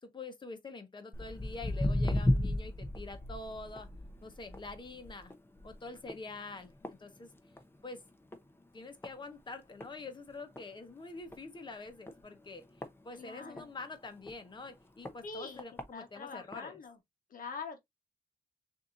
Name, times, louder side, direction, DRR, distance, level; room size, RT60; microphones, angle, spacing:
voice 1, 0.0-3.9 4.2-5.3 5.6-7.3 7.8-8.0 8.7-12.7 13.0-16.8, left 3 dB, 30° left, 1.2 m, -46 dB
Walk footsteps, 1.1-7.8 8.1-8.5 9.0-9.1 9.8-9.9 10.3-10.4 10.6-10.7 11.2-11.4 12.1-13.7 14.2-14.3 15.1-15.2 15.6-15.8 16.5-16.6, left 1 dB, 15° left, 0.8 m, -34 dB
voice 2, 13.1-13.7 15.2-15.6 15.9-17.0 17.3-17.8, left 4 dB, 65° left, 1.1 m, -44 dB
6.6 x 2.9 x 2.5 m
wide cardioid pair, 150°, 16 cm